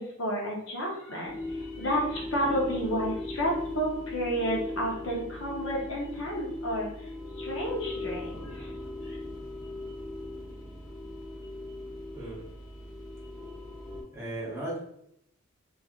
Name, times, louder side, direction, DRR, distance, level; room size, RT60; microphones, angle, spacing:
voice 1, 0.0-7.1 7.4-8.7 9.0-9.2, equal, 60° left, -2 dB, 0.8 m, -31 dB
sound 1, 1.2-14.0, left 2 dB, 15° left, 0.5 m, -38 dB
voice 2, 12.1-12.4 14.1-14.8, right 1 dB, 10° right, -7 dB, 0.8 m, -36 dB
3.2 x 2.4 x 2.4 m, 0.75 s
head